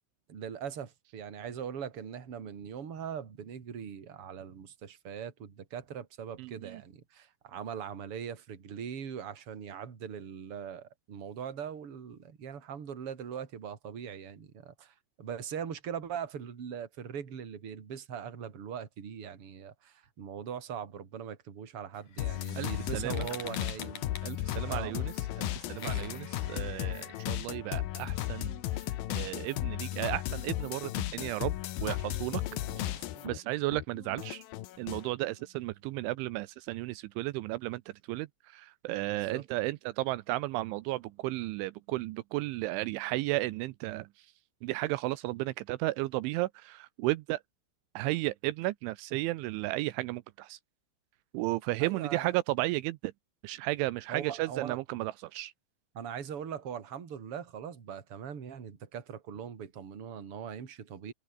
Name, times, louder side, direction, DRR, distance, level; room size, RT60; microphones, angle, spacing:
voice 1, 0.3-24.1 24.6-24.9 25.7-26.2 32.3-33.4 39.1-39.4 51.8-52.3 54.1-54.8 55.9-61.1, right 8 dB, 35° right, 3.1 m, -41 dB
voice 2, 6.4-6.8 22.6-23.3 24.2-28.6 29.1-31.5 31.8-32.4 32.8-32.9 33.2-34.4 34.8-37.8 38.1-44.1 44.6-47.4 48.0-50.6 51.3-53.1 53.4-55.5, right 19 dB, 85° right, 3.1 m, -34 dB
sound 1, 21.9-27.5, left 7 dB, 45° left, 3.8 m, -48 dB
sound 2, 22.2-33.4 33.7-35.1, left 14 dB, 75° left, 2.3 m, -35 dB
omnidirectional pair, 5.6 m